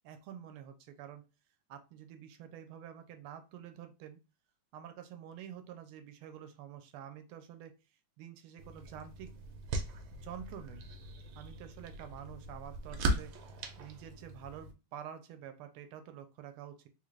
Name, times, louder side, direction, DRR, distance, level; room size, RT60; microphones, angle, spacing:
voice 1, 0.0-1.3 1.7-4.2 4.7-7.8 8.2-9.4 10.1-10.8 11.3-16.9, right 9 dB, 90° right, 8 dB, 1.5 m, -48 dB
sound 1, 8.6-14.7, right 1 dB, 75° right, 1.4 m, -39 dB
3.8 x 2.4 x 3.1 m, 0.28 s
omnidirectional pair, 2.3 m